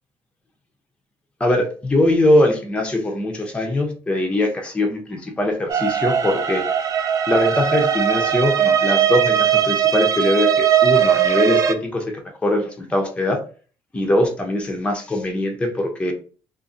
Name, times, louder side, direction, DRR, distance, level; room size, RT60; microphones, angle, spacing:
voice 1, 1.4-6.6 7.3-12.0 12.4-13.4 13.9-16.1, left 1 dB, 10° left, 2 dB, 0.6 m, -21 dB
sound 1, 5.7-11.7, right 9 dB, 40° right, 0.3 m, -19 dB
2.6 x 2.5 x 2.5 m, 0.39 s
cardioid pair, 110°, 9 cm